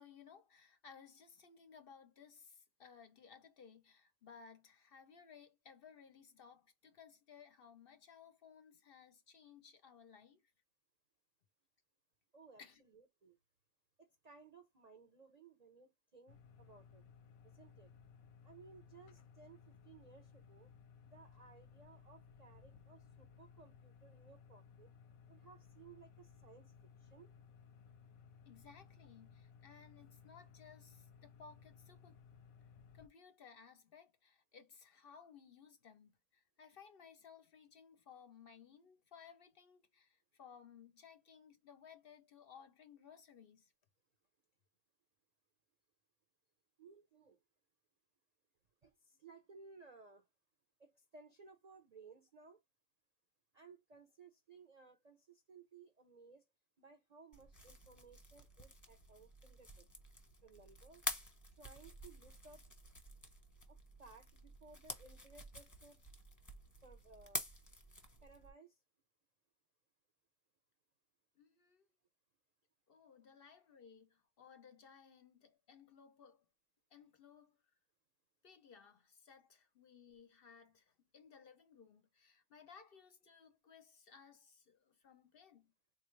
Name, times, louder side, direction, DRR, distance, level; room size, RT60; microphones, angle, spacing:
voice 1, 0.0-10.5 12.6-12.8 28.4-32.2 32.9-43.7 71.4-71.9 72.9-76.5 76.9-77.6 78.4-85.7, left 6 dB, 55° left, 0.6 m, -60 dB
voice 2, 12.3-13.4 14.0-17.0 17.4-17.9 18.4-20.7 21.1-24.9 25.3-26.7 27.0-27.3 46.8-47.4 48.8-50.3 50.8-52.6 53.5-56.4 56.8-59.9 60.4-61.0 61.6-62.6 63.7-66.0 66.8-67.4 68.2-68.8, right 4 dB, 50° right, 0.4 m, -60 dB
sound 1, 16.3-33.1, left 6 dB, 90° left, 1.1 m, -61 dB
sound 2, 57.3-68.5, left 1 dB, 15° left, 0.7 m, -49 dB
4.0 x 2.3 x 3.1 m
omnidirectional pair, 1.4 m